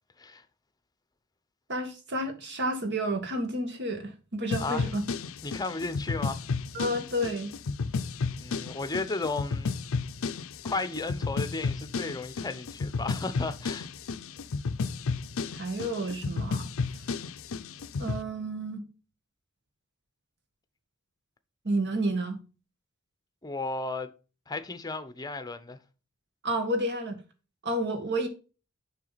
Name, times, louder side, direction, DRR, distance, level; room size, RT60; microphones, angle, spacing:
voice 1, 1.7-5.0 6.7-7.5 15.5-16.7 18.0-18.8 21.6-22.4 26.4-27.2 27.6-28.3, right 1 dB, 55° right, 1.7 m, -30 dB
sound 1, 4.5-18.2, left 4 dB, 65° left, 0.5 m, -33 dB
voice 2, 5.4-6.4 8.4-9.7 10.6-13.9 23.4-24.1 24.5-25.8, left 3 dB, 20° left, 0.8 m, -34 dB
7.5 x 5.9 x 4.0 m
head